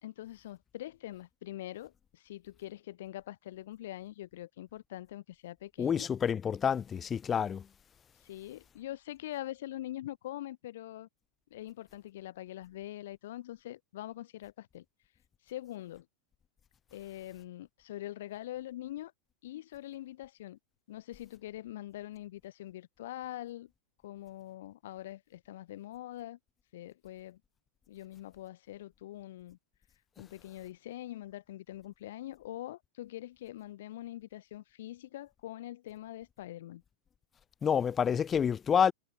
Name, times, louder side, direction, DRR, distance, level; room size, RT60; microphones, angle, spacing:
voice 1, 0.0-6.1 8.2-11.1 11.5-14.8 15.5-16.1 16.9-19.1 19.4-20.6 20.9-23.7 24.0-26.4 26.7-27.4 27.9-29.6 30.2-36.8, left 14 dB, 70° left, 2.8 m, -43 dB
voice 2, 5.8-7.7 37.6-38.9, left 7 dB, 20° left, 0.3 m, -28 dB
supercardioid pair, 145°, 0 cm